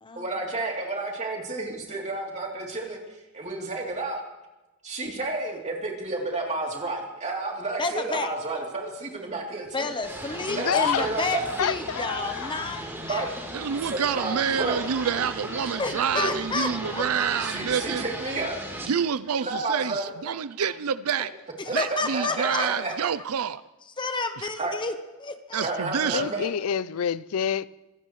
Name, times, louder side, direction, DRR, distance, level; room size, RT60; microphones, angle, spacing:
voice 1, 0.1-3.0 3.3-4.2 4.8-9.9 10.6-11.5 13.0-13.3 13.9-14.8 16.1-16.3 17.4-18.6 19.4-20.1 21.7-23.1 24.6-24.7 25.6-26.5, right 2 dB, 30° right, 3.1 m, -31 dB
voice 2, 7.8-8.3 9.7-13.3 15.8-17.0 21.6-22.7 24.0-25.7, left 3 dB, 20° left, 0.8 m, -30 dB
sound 1, 10.0-18.9, right 1 dB, 10° right, 3.5 m, -36 dB
voice 3, 10.5-11.1 11.6-12.9 26.1-27.7, left 8 dB, 70° left, 0.4 m, -28 dB
voice 4, 13.5-18.0 18.9-21.3 21.7-23.6 24.4-24.5 25.5-26.3, right 7 dB, 70° right, 0.5 m, -28 dB
24.5 x 16.5 x 3.2 m
head